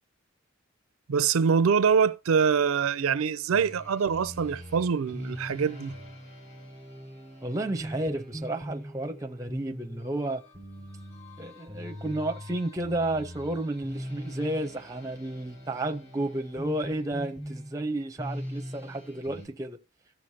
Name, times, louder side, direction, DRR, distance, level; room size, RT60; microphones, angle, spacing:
voice 1, 1.1-5.9, right 6 dB, 80° right, 0.4 m, -24 dB
sound 1, 3.5-19.5, equal, 30° left, 3.9 m, -41 dB
voice 2, 7.4-10.4 11.4-19.8, right 1 dB, 15° right, 0.6 m, -32 dB
16.0 x 6.4 x 2.8 m
head